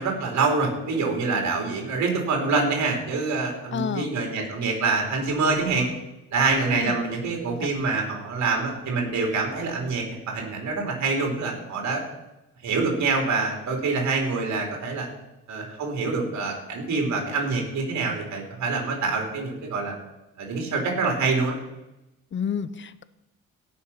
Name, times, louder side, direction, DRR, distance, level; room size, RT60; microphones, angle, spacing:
voice 1, 0.0-5.9 6.3-12.0 12.6-15.1 15.5-19.9 20.4-21.6, right 4 dB, 65° right, 1 dB, 3.9 m, -26 dB
voice 2, 3.7-4.1 6.7-6.9 7.6-7.7 22.3-23.0, left 7 dB, 40° left, 15 dB, 0.7 m, -30 dB
17.0 x 6.2 x 5.9 m, 0.93 s
cardioid pair, 90°, 30 cm